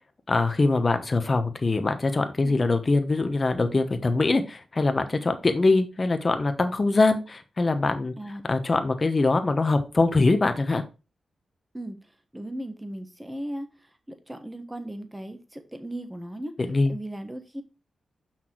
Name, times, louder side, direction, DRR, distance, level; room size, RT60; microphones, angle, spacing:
voice 1, 0.3-8.1 8.5-10.8 16.6-16.9, left 3 dB, 35° left, 8 dB, 1.1 m, -23 dB
voice 2, 12.3-13.7 14.1-16.5 16.9-17.6, right 1 dB, 10° right, 7 dB, 1.4 m, -36 dB
6.2 x 5.9 x 4.6 m, 0.30 s
wide cardioid pair, 100°, 0 cm